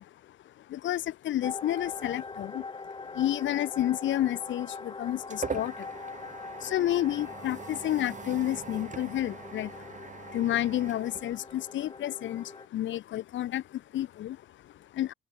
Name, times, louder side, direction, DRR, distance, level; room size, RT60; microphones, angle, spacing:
voice 1, 0.0-6.2 6.6-15.1, left 13 dB, 70° left, 1.1 m, -31 dB
sound 1, 1.4-12.7, left 4 dB, 25° left, 1.6 m, -43 dB
sound 2, 4.6-12.0, right 5 dB, 40° right, 4.7 m, -42 dB
open air
cardioid pair, 90°, 20 cm